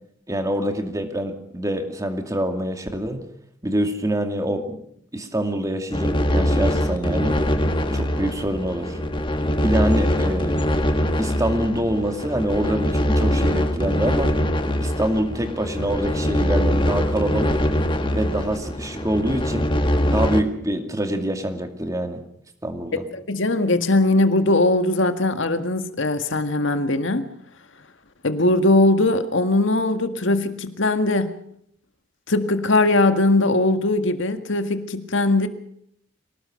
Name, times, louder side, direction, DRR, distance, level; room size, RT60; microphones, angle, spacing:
voice 1, 0.3-3.2 3.6-4.8 5.1-7.4 7.9-9.0 9.6-10.6 11.2-14.4 14.8-17.6 18.1-19.7 20.1-22.2 22.6-23.0, right 1 dB, 15° right, 6 dB, 2.4 m, -25 dB
sound 1, 5.9-20.4, equal, 25° left, 1.6 m, -23 dB
voice 2, 22.9-27.3 28.2-31.4 32.3-35.5, left 2 dB, 70° left, 8 dB, 1.9 m, -20 dB
24.5 x 18.5 x 6.5 m, 0.69 s
head